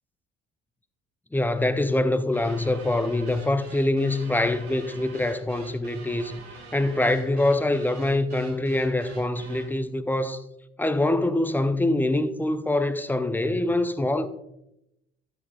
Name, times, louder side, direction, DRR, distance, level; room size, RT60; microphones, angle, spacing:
voice 1, 1.3-6.4 6.7-10.4 10.8-14.3, left 1 dB, 5° left, 0.5 m, -24 dB
sound 1, 2.3-9.8, right 4 dB, 70° right, 1.8 m, -46 dB
11.5 x 10.5 x 2.3 m
figure-of-eight pair, 50°, 33 cm